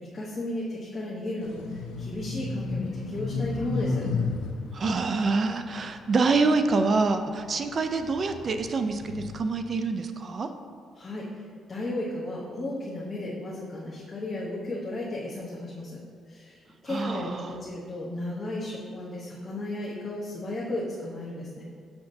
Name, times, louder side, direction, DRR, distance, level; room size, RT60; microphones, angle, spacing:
voice 1, 0.0-4.0 10.9-11.4 11.7-16.0 16.3-21.6, left 1 dB, 25° left, -6 dB, 0.9 m, -34 dB
sound 1, 1.4-7.0 7.5-9.4, left 4 dB, 90° left, 0.5 m, -33 dB
voice 2, 4.7-10.5 16.9-17.5, right 3 dB, 45° right, 8 dB, 0.4 m, -26 dB
6.5 x 5.8 x 2.6 m, 2.1 s
cardioid pair, 90°, 0 cm